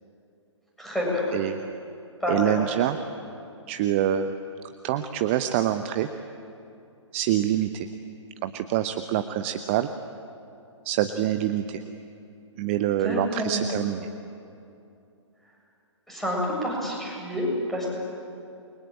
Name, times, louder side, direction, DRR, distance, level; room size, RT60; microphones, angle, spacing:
voice 1, 0.8-1.2 2.2-2.6 13.0-13.7 16.1-17.9, left 1 dB, ahead, -4 dB, 7.6 m, -28 dB
voice 2, 1.3-1.6 2.3-3.0 3.7-4.3 4.8-6.1 7.1-7.9 8.4-9.9 10.8-11.8 12.6-14.1, right 11 dB, 25° right, 9 dB, 0.9 m, -25 dB
29.0 x 23.5 x 8.8 m, 2.6 s
figure-of-eight pair, 130°, 16 cm